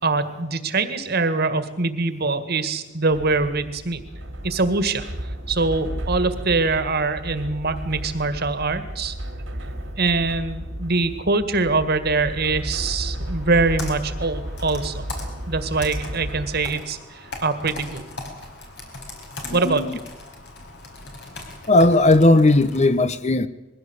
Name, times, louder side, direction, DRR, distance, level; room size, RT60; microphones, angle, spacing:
voice 1, 0.0-4.0 4.4-5.1 5.5-9.2 10.0-15.1 15.5-18.0 19.5-19.8, right 3 dB, 55° right, 1.9 m, -23 dB
sound 1, 3.1-16.8, right 1 dB, 90° right, 2.7 m, -33 dB
Computer keyboard, 13.2-22.9, left 2 dB, 65° left, 4.8 m, -39 dB
voice 2, 19.4-19.9 21.7-23.5, left 2 dB, 35° left, 0.8 m, -17 dB
21.5 x 16.0 x 8.1 m
head